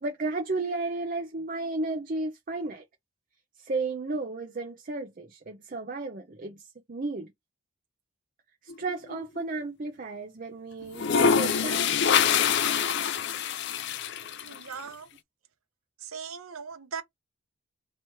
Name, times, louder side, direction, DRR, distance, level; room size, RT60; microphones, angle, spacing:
voice 1, 0.0-2.8 3.6-6.6 6.9-7.3 8.6-11.8, right 3 dB, 40° right, 0.6 m, -33 dB
sound 1, 8.7-9.5 10.8-14.6, left 6 dB, 55° left, 0.5 m, -25 dB
voice 2, 14.4-15.1 16.0-17.0, right 6 dB, 80° right, 0.9 m, -39 dB
3.0 x 3.0 x 4.5 m
head